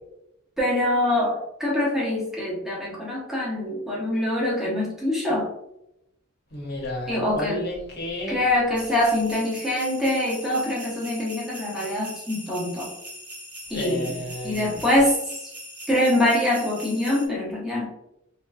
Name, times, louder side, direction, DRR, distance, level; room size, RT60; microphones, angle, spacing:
voice 1, 0.6-5.5 7.1-7.6 8.3-12.9 13.7-14.1 14.4-15.1 15.4-15.5 15.9-17.9, left 1 dB, ahead, -6 dB, 1.0 m, -24 dB
voice 2, 6.5-8.4 13.7-14.9, left 1 dB, 50° left, -1 dB, 0.9 m, -32 dB
sound 1, 8.8-17.3, equal, 55° right, 1.3 m, -41 dB
3.1 x 3.0 x 2.3 m, 0.81 s
head